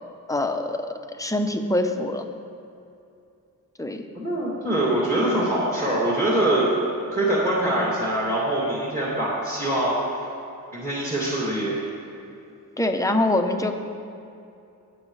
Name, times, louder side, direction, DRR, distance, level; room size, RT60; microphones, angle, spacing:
voice 1, 0.3-0.8 1.2-2.2 3.8-4.0 12.8-13.7, left 1 dB, 10° left, 5 dB, 0.7 m, -24 dB
voice 2, 4.1-6.7 7.1-10.0 10.7-11.8, right 1 dB, 25° right, -7 dB, 2.3 m, -23 dB
19.0 x 7.2 x 3.3 m, 2.6 s
wide cardioid pair, 110°, 35 cm